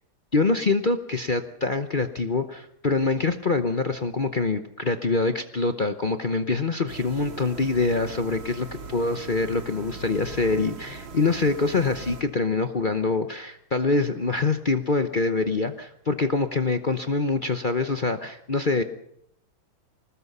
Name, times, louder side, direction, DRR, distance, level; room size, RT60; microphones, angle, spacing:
voice 1, 0.3-18.8, left 3 dB, 45° left, 8 dB, 0.7 m, -25 dB
sound 1, 6.9-12.2, right 4 dB, 85° right, 2.9 m, -40 dB
25.5 x 19.5 x 5.6 m, 0.73 s
omnidirectional pair, 2.1 m